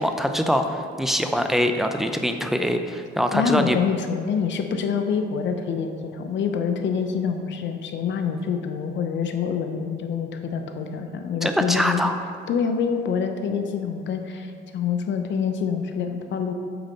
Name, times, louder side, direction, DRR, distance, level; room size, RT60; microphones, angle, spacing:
voice 1, 0.0-3.8 11.4-12.2, equal, ahead, 6 dB, 0.5 m, -23 dB
voice 2, 3.3-12.0 12.5-14.5 14.7-16.5, left 6 dB, 65° left, 6 dB, 0.7 m, -26 dB
7.8 x 3.9 x 5.2 m, 2.2 s
cardioid pair, 90°, 20 cm